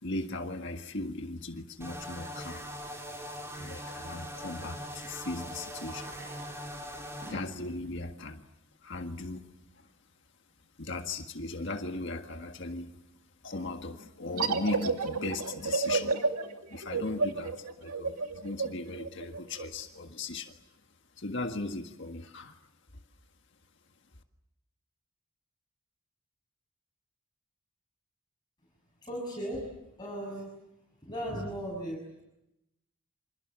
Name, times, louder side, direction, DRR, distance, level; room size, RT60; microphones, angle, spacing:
voice 1, 0.0-2.7 3.6-6.1 7.3-8.4 8.8-9.5 9.7-9.9 10.8-13.0 13.4-20.6 21.2-22.6, left 2 dB, 55° left, 5 dB, 1.7 m, -38 dB
sound 1, 1.8-7.3, equal, 10° right, 4.7 m, -41 dB
Fireworks, 5.8-9.5 10.2-10.3 10.5-10.6 10.8-10.9 11.5-11.7, right 1 dB, 40° right, 4.5 m, -52 dB
sound 2, 14.4-19.7, right 4 dB, 80° right, 2.6 m, -31 dB
voice 2, 29.0-29.7 30.0-30.5 31.0-32.2, right 1 dB, 20° left, -3 dB, 6.9 m, -37 dB
28.5 x 27.0 x 7.5 m, 0.87 s
head